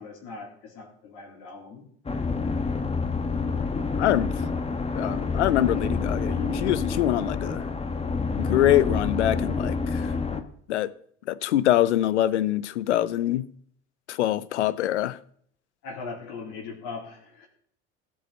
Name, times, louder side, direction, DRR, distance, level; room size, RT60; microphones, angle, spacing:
voice 1, 0.0-1.8 15.8-17.5, left 4 dB, 65° left, 3.5 m, -39 dB
sound 1, 2.1-10.4, left 4 dB, 20° left, 1.2 m, -28 dB
voice 2, 4.0-4.3 5.0-7.7 8.4-10.1 10.7-10.9 11.3-13.5 14.1-15.2, left 13 dB, 90° left, 0.6 m, -24 dB
16.0 x 5.4 x 6.7 m
hypercardioid pair, 75°, 33 cm